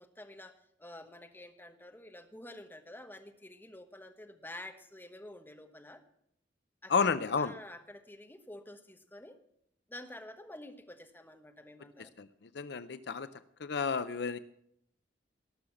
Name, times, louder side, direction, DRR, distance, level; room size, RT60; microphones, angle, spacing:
voice 1, 0.0-6.0 6.8-9.4 9.9-12.1, left 1 dB, 10° left, 5 dB, 1.2 m, -49 dB
voice 2, 6.9-7.5 12.2-12.3 12.5-13.3 13.6-14.4, left 5 dB, 60° left, 13 dB, 0.5 m, -31 dB
19.0 x 6.4 x 7.1 m, 0.72 s
head